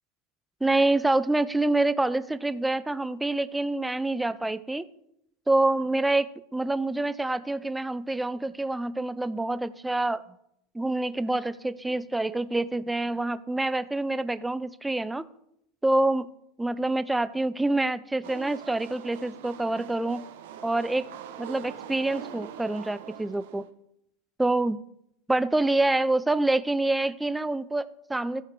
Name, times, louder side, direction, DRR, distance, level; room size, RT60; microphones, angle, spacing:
voice 1, 0.6-4.8 5.5-10.2 10.7-15.2 15.8-16.3 16.6-20.2 20.6-21.1 21.4-23.6 24.4-24.8 25.3-28.4, right 2 dB, 5° right, 16 dB, 0.3 m, -26 dB
sound 1, 18.2-23.7, right 9 dB, 85° right, 0.9 m, -43 dB
14.0 x 4.8 x 5.0 m, 0.77 s
supercardioid pair, 140°, 0 cm